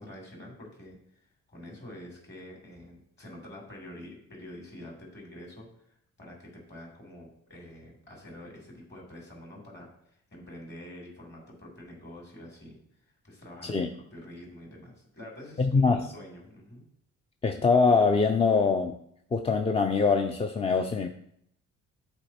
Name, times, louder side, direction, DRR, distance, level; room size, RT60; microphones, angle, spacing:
voice 1, 0.0-5.7 6.2-12.8 13.2-16.8, left 1 dB, 35° left, -1 dB, 2.9 m, -47 dB
voice 2, 15.6-16.1 17.4-19.0 19.3-21.1, left 4 dB, 20° left, 5 dB, 0.4 m, -23 dB
7.8 x 4.2 x 4.3 m, 0.71 s
cardioid pair, 90°, 30 cm